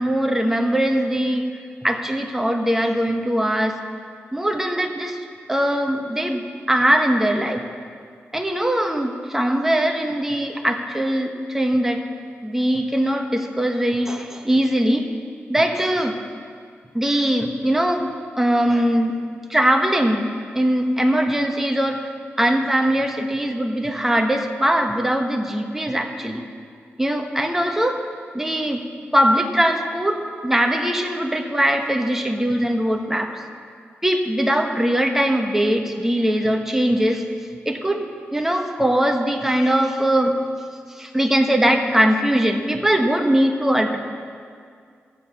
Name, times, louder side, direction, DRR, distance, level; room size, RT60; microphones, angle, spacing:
voice 1, 0.0-1.5 1.8-3.8 4.3-5.2 5.5-6.4 6.7-7.6 8.3-12.0 12.4-15.1 15.5-16.2 16.9-18.1 18.3-19.2 19.5-22.1 22.4-26.5 27.0-28.0 28.3-28.9 29.1-33.3 34.0-37.3 37.6-38.0 38.3-40.4 40.9-44.0, right 1 dB, 10° right, 4 dB, 1.1 m, -21 dB
15.0 x 7.8 x 7.0 m, 2.1 s
cardioid pair, 75°, 4 cm